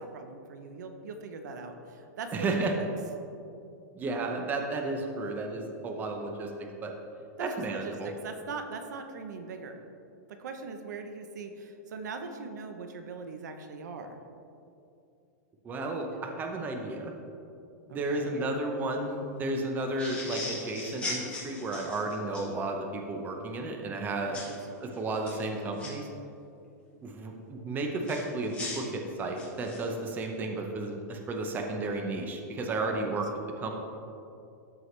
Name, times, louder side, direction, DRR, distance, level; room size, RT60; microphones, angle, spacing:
voice 1, 0.0-2.9 7.4-9.8 10.3-14.2 17.9-18.5 24.2-24.5 32.9-33.2, right 4 dB, 80° right, 6 dB, 0.8 m, -41 dB
voice 2, 2.3-2.7 3.9-6.9 7.4-8.1 15.6-17.1 17.9-24.4 24.8-26.1 27.0-33.3 33.6-33.7, right 2 dB, 20° right, 3 dB, 0.8 m, -33 dB
sound 1, 20.0-22.5 24.3-24.6 25.1-25.9 28.0-29.9, left 2 dB, 15° left, 1.9 m, -38 dB
13.0 x 4.8 x 3.2 m, 2.6 s
supercardioid pair, 145°, 9 cm